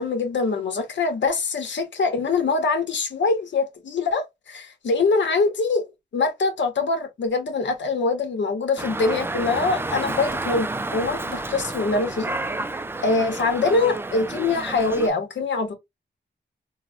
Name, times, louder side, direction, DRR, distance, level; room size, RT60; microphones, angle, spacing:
voice 1, 0.0-5.8 6.1-12.3 13.0-15.7, left 3 dB, 75° left, 0.9 m, -24 dB
Dog, 8.8-15.1, right 2 dB, 10° right, 0.3 m, -30 dB
3.8 x 2.1 x 2.4 m
cardioid pair, 65°, 19 cm